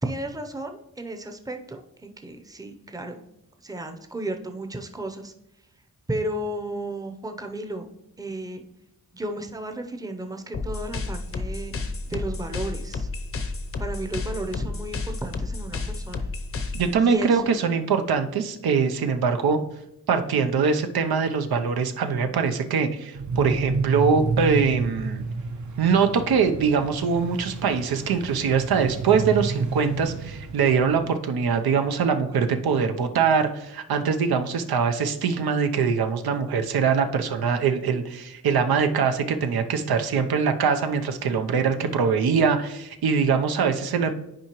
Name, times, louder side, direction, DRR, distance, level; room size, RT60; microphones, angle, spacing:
voice 1, 0.0-3.2 3.6-5.3 6.1-7.9 8.2-8.6 9.1-11.7 12.1-13.1 13.8-16.3 17.0-17.6, right 1 dB, 10° right, 5 dB, 0.6 m, -33 dB
sound 1, 10.5-16.9, left 3 dB, 40° left, 0.7 m, -31 dB
voice 2, 16.7-19.6 20.1-25.2 25.8-44.1, right 6 dB, 90° right, 7 dB, 0.7 m, -23 dB
sound 2, 23.1-31.0, right 4 dB, 55° right, 0.7 m, -31 dB
10.0 x 4.7 x 3.0 m, 0.83 s
wide cardioid pair, 115°, 36 cm